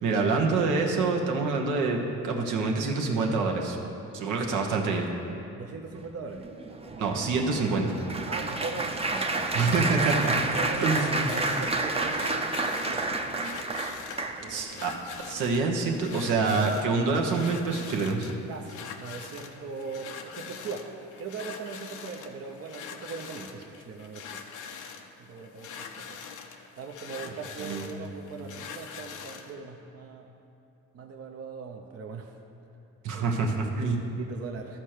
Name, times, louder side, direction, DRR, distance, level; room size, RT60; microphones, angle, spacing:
voice 1, 0.0-2.0 2.2-3.8 4.1-5.1 7.0-7.9 9.5-10.3 10.8-11.3 14.5-14.9 15.3-18.3 27.6-27.9 33.0-34.0, right 4 dB, 85° right, 1 dB, 1.2 m, -26 dB
voice 2, 5.6-6.8 8.3-9.7 10.5-13.2 14.2-14.9 18.5-24.4 25.2-26.2 26.7-30.4 30.9-32.4 33.1-33.3 33.9-34.8, right 4 dB, 50° right, 2 dB, 0.8 m, -40 dB
Applause, 6.4-14.7 15.3-15.6 15.8-16.0, right 2 dB, 20° right, 0.7 m, -30 dB
sound 1, 10.2-29.5, left 6 dB, 85° left, 0.8 m, -43 dB
13.0 x 4.5 x 6.6 m, 2.8 s
cardioid pair, 90°, 30 cm